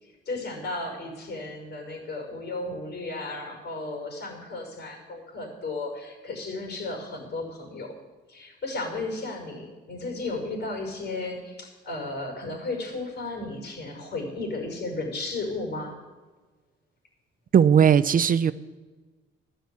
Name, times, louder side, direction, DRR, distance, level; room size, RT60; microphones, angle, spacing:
voice 1, 0.0-7.9 8.3-15.9, left 2 dB, 60° left, 2 dB, 5.7 m, -34 dB
voice 2, 17.5-18.5, right 8 dB, 45° right, 15 dB, 0.6 m, -18 dB
12.5 x 10.5 x 8.5 m, 1.3 s
cardioid pair, 90°, 20 cm